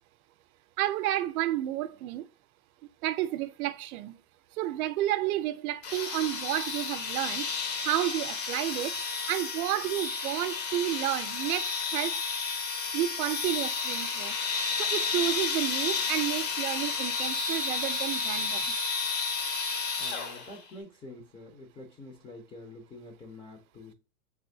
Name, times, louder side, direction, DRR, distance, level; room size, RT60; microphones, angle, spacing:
voice 1, 0.8-2.2 3.0-4.1 4.6-7.5 7.8-8.9 9.3-12.2 12.9-14.3 14.8-18.7, right 14 dB, 70° right, 0.5 m, -31 dB
sound 1, 5.8-20.6, left 5 dB, 55° left, 1.1 m, -32 dB
voice 2, 20.0-23.9, left 2 dB, 10° left, 0.4 m, -47 dB
3.4 x 3.0 x 2.6 m
hypercardioid pair, 120°, 46 cm